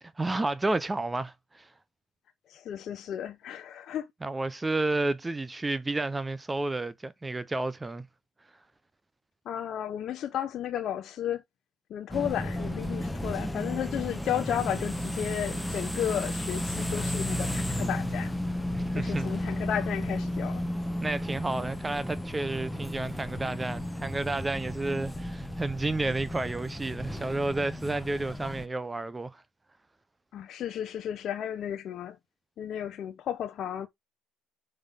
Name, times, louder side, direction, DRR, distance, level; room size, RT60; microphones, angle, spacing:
voice 1, 0.2-1.7 4.2-8.0 18.7-19.3 21.0-29.4, right 2 dB, 15° right, 0.6 m, -31 dB
voice 2, 2.5-4.1 9.5-11.4 11.9-18.3 18.9-20.6 30.3-32.2 32.6-33.9, left 10 dB, 55° left, 0.8 m, -33 dB
sound 1, 12.1-28.7, left 1 dB, 5° left, 1.1 m, -33 dB
5.6 x 5.0 x 3.5 m
cardioid pair, 100°, 0 cm